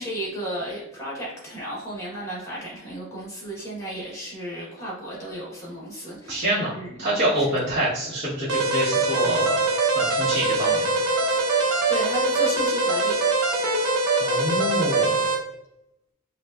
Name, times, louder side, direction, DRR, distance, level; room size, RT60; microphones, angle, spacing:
voice 1, 0.0-7.0 11.2-11.4 11.9-13.3, right 1 dB, 15° left, -5 dB, 1.4 m, -34 dB
voice 2, 6.3-6.7 7.0-9.6 9.9-11.0 14.2-15.1, equal, 30° right, -14 dB, 1.4 m, -26 dB
sound 1, 8.5-15.4, right 2 dB, 85° right, 0.7 m, -23 dB
5.2 x 2.4 x 2.5 m, 0.84 s
head